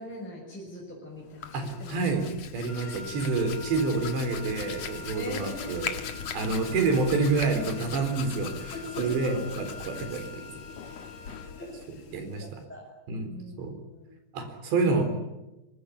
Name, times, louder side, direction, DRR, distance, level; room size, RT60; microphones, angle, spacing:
voice 1, 0.0-2.0 5.1-5.7 6.7-7.4 8.7-9.5 11.6-12.9 13.2-13.6 13.9-14.1, equal, ahead, -3 dB, 6.1 m, -41 dB
Hands, 1.2-12.6, left 7 dB, 50° left, 2.2 m, -40 dB
voice 2, 1.5-2.3 2.5-6.0 6.3-10.5 12.1-12.6 13.1-13.7 14.3-15.0, right 3 dB, 85° right, 7 dB, 6.3 m, -28 dB
Wind instrument woodwind instrument, 2.7-11.5, left 1 dB, 35° right, 6.7 m, -46 dB
25.0 x 20.5 x 9.9 m, 0.99 s
omnidirectional pair, 4.9 m